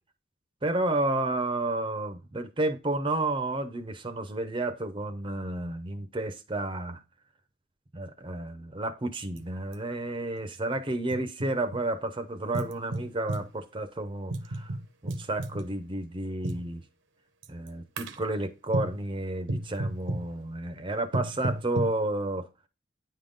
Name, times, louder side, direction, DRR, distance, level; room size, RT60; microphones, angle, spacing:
voice 1, 0.6-7.0 7.9-14.7 15.0-16.8 17.5-22.5, right 2 dB, 25° right, 0.6 m, -31 dB
sound 1, 9.4-9.5 9.7-9.8 10.7-11.8 12.5-13.5 14.3-15.7 16.4-16.7 17.4-17.7 18.0-18.3 18.7-19.0 19.5-20.3 21.1-22.0, right 1 dB, 75° right, 0.8 m, -33 dB
9.4 x 3.7 x 3.8 m
head